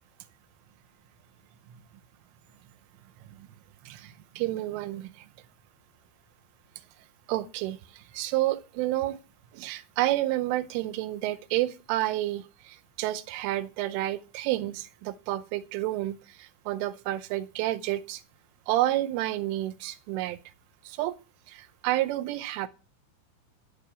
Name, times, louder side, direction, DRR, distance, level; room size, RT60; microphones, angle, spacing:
voice 1, 3.8-5.3 7.3-9.2 9.5-18.2 18.7-20.4 20.9-21.2 21.5-22.7, right 15 dB, 85° right, 3.2 m, -30 dB
13.0 x 4.9 x 8.0 m
omnidirectional pair, 5.6 m